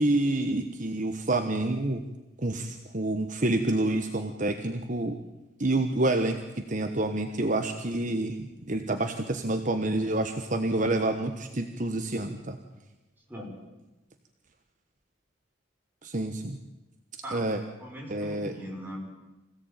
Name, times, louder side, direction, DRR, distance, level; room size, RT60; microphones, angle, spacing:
voice 1, 0.0-2.0 2.4-5.2 5.6-12.6 16.0-16.6 17.3-17.6 18.1-18.5, right 2 dB, 40° right, 6 dB, 1.3 m, -28 dB
voice 2, 17.2-19.0, equal, 10° right, -2 dB, 5.8 m, -40 dB
25.5 x 17.0 x 9.1 m, 1.1 s
head